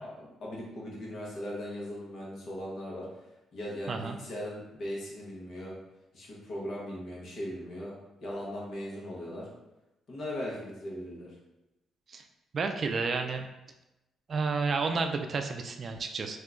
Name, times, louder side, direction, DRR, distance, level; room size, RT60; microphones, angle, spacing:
voice 1, 0.0-3.1 3.5-5.7 6.1-7.9 8.2-9.5 10.1-11.3, left 1 dB, 60° left, -4 dB, 1.1 m, -38 dB
voice 2, 12.5-13.5 14.3-16.4, right 4 dB, 45° right, 5 dB, 0.3 m, -31 dB
2.8 x 2.2 x 3.7 m, 0.95 s
cardioid pair, 90°, 0 cm